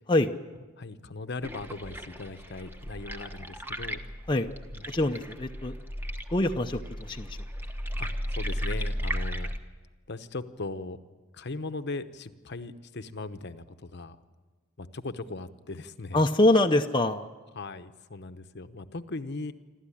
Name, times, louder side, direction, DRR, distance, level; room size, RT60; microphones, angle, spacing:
voice 1, 0.8-4.0 4.7-4.8 8.0-9.5 10.1-11.0 11.3-14.2 14.8-16.2 17.6-19.5, left 3 dB, 50° left, 10 dB, 0.9 m, -38 dB
sound 1, 1.4-9.6, equal, 10° right, 1.2 m, -35 dB
voice 2, 4.9-5.7 6.3-7.4 16.1-17.3, left 1 dB, 20° left, 3 dB, 0.7 m, -24 dB
27.5 x 13.0 x 10.0 m, 1.3 s
head